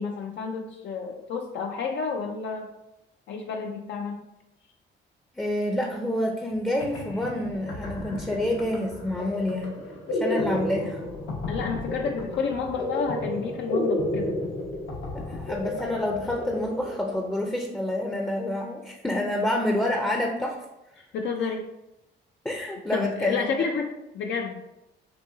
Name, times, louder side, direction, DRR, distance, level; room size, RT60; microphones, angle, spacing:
voice 1, 0.0-2.7 3.3-4.2 11.5-14.4 21.0-21.7 22.9-23.9 24.1-24.6, left 5 dB, 65° left, 3 dB, 0.4 m, -30 dB
voice 2, 5.4-9.8 10.1-11.0 15.1-20.6 22.4-23.5, left 1 dB, 5° left, 1 dB, 0.5 m, -28 dB
sound 1, 6.5-6.6 6.8-17.4, left 1 dB, 90° left, 1.2 m, -32 dB
5.5 x 2.7 x 2.6 m, 0.94 s
cardioid pair, 90°, 20 cm